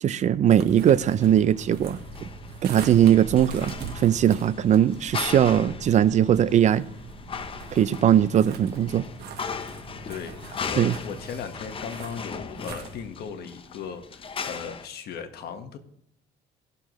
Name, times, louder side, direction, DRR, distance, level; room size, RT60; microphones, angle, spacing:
voice 1, 0.0-2.0 2.6-6.8 7.7-9.1 10.8-10.9, right 10 dB, 45° right, 0.5 m, -20 dB
sound 1, 0.6-13.1, right 5 dB, 75° right, 1.4 m, -41 dB
sound 2, 1.2-14.9, left 5 dB, 30° left, 0.7 m, -38 dB
voice 2, 10.1-15.8, left 7 dB, 70° left, 1.4 m, -37 dB
17.5 x 6.7 x 3.1 m
cardioid pair, 110°, 17 cm